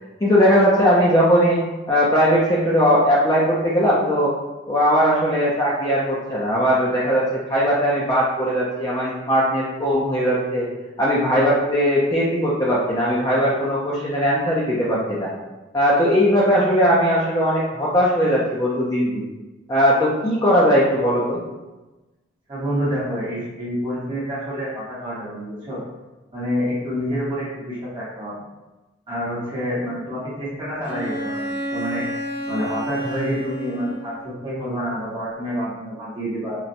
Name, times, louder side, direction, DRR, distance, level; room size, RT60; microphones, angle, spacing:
voice 1, 0.2-1.6 1.9-4.3 4.7-10.7 11.0-15.3 15.7-19.2 19.7-21.4, equal, 20° left, -6 dB, 0.4 m, -19 dB
voice 2, 22.5-25.8 26.3-28.4 29.1-32.0 32.5-36.6, equal, 25° right, -9 dB, 0.9 m, -28 dB
Bowed string instrument, 30.8-34.4, equal, 70° right, 0.9 m, -30 dB
3.9 x 2.1 x 2.5 m, 1.1 s
head